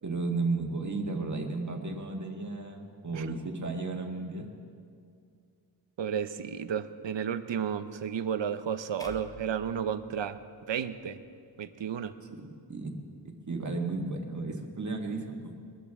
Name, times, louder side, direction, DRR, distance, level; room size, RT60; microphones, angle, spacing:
voice 1, 0.0-4.5 12.4-12.9 13.2-15.5, right 3 dB, 40° right, 2 dB, 1.7 m, -34 dB
voice 2, 6.0-10.4 10.7-11.2 11.6-12.1, right 8 dB, 75° right, 11 dB, 0.8 m, -32 dB
sound 1, 9.0-11.3, left 1 dB, 10° left, 0.7 m, -51 dB
22.0 x 13.5 x 3.6 m, 2.3 s
wide cardioid pair, 115°, 45 cm